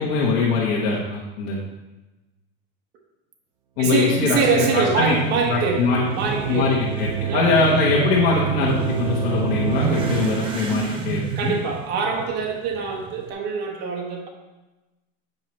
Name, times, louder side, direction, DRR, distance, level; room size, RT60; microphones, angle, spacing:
voice 1, 0.0-1.6 3.8-5.2 5.5-6.1 6.5-11.5, left 4 dB, 65° left, -5 dB, 1.3 m, -22 dB
voice 2, 3.8-5.8 6.1-6.8 7.3-7.5 11.4-14.3, right 5 dB, 35° right, 1 dB, 1.0 m, -24 dB
sound 1, 3.9-10.7, right 8 dB, 70° right, 0.6 m, -28 dB
Motorcycle / Accelerating revving vroom, 4.5-13.3, right 5 dB, 20° right, 0.4 m, -33 dB
7.7 x 5.5 x 3.1 m, 1.1 s
supercardioid pair, 165°, 29 cm